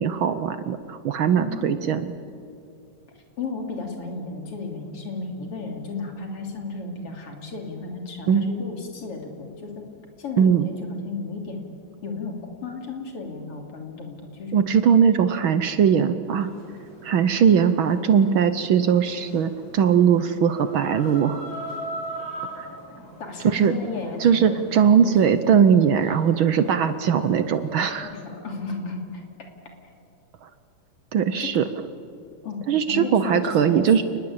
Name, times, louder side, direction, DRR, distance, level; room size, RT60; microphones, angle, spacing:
voice 1, 0.0-2.2 8.3-8.5 10.4-10.7 14.5-16.5 17.0-21.5 22.5-22.7 23.4-23.7 24.2-28.1 30.4-30.5 31.1-31.6 32.7-34.0, right 7 dB, 75° right, 11 dB, 1.2 m, -20 dB
voice 2, 1.4-2.0 3.4-9.9 10.2-11.6 12.0-14.6 23.2-24.6 24.9-25.6 28.0-29.2 31.4-31.6 32.4-33.9, left 4 dB, 50° left, 2 dB, 4.0 m, -34 dB
Chicken rooster, 16.2-27.9, right 1 dB, 70° left, 9.0 m, -41 dB
29.5 x 20.0 x 8.8 m, 2.5 s
omnidirectional pair, 3.4 m